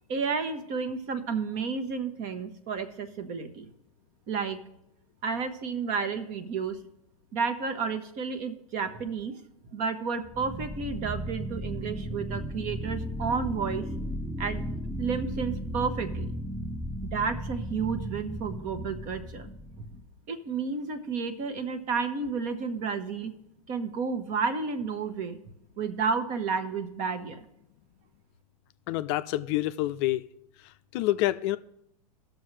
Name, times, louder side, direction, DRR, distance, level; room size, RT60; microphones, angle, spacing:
voice 1, 0.1-3.7 4.3-4.6 5.2-6.8 7.3-9.3 9.7-13.9 14.4-14.6 15.0-16.3 17.0-19.5 19.8-19.9 20.3-23.3 23.7-25.4 25.8-27.4, right 5 dB, 40° right, 9 dB, 1.2 m, -31 dB
sound 1, 10.2-20.0, equal, 5° right, 0.5 m, -35 dB
voice 2, 28.9-30.2 30.9-31.6, left 15 dB, 45° left, 12 dB, 0.5 m, -27 dB
17.5 x 6.4 x 3.3 m, 0.80 s
hypercardioid pair, 105°, 19 cm